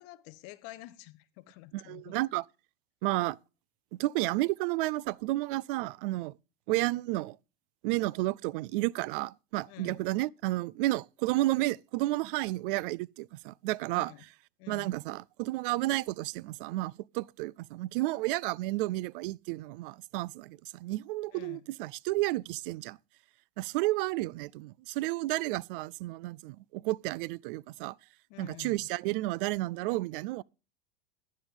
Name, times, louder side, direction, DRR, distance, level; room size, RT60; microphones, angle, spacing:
voice 1, 0.0-2.2 9.7-10.1 14.0-14.2 14.6-15.0 21.3-21.6 28.3-28.9, left 18 dB, 50° left, 0.9 m, -49 dB
voice 2, 1.7-2.4 3.0-3.4 4.0-6.3 6.7-7.4 7.8-14.1 14.7-23.0 23.6-27.9 28.4-30.4, right 19 dB, 60° right, 0.4 m, -31 dB
10.5 x 9.6 x 3.6 m
supercardioid pair, 140°, 31 cm